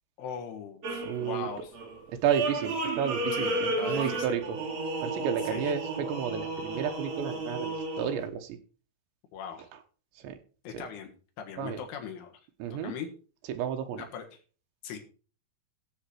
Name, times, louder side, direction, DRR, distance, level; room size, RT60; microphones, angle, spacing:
voice 1, 0.2-1.7 3.3-4.4 5.5-5.7 9.3-9.7 10.7-11.1 11.4-12.3 12.7-13.1 13.9-14.2 14.8-15.0, left 7 dB, 75° left, 4 dB, 4.0 m, -39 dB
sound 1, 0.8-8.3, right 2 dB, 40° right, 2.9 m, -33 dB
voice 2, 1.0-1.5 2.2-4.6 5.0-8.6 10.2-10.4 10.7-10.8 11.6-11.8 12.6-12.9 13.5-14.0, right 8 dB, 75° right, 6 dB, 3.1 m, -32 dB
14.5 x 7.9 x 4.5 m, 0.39 s
omnidirectional pair, 5.7 m